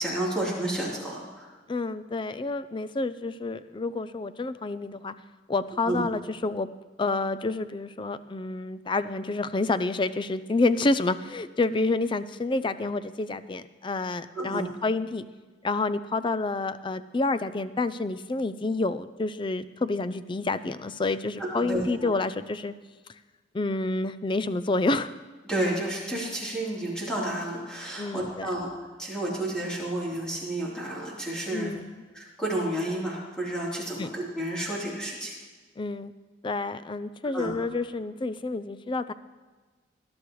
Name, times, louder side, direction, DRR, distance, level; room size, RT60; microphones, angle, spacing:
voice 1, 0.0-1.5 5.9-6.0 14.3-14.7 21.4-22.1 25.5-28.7 29.0-31.7 32.1-35.3 37.3-37.5, right 1 dB, 5° left, -6 dB, 3.5 m, -31 dB
voice 2, 1.7-5.1 5.5-6.7 7.0-15.2 15.6-22.7 23.5-25.1 28.0-28.5 31.5-32.0 34.0-34.1 35.8-36.1 36.4-39.1, left 3 dB, 25° left, 13 dB, 0.4 m, -28 dB
19.5 x 11.5 x 3.2 m, 1.3 s
head